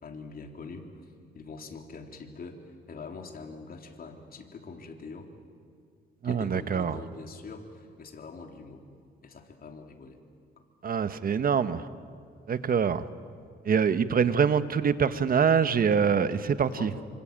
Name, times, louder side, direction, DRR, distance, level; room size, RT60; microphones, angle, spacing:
voice 1, 0.0-0.9 1.3-5.3 6.2-8.9 9.2-10.2 10.6-10.7 13.9-14.0 16.6-17.1, left 4 dB, 50° left, 4 dB, 3.4 m, -43 dB
voice 2, 6.2-7.0 10.8-11.9 12.5-13.0 13.6-16.9, right 6 dB, 45° right, 12 dB, 1.3 m, -25 dB
26.5 x 25.0 x 9.0 m, 2.2 s
cardioid pair, 90°, 20 cm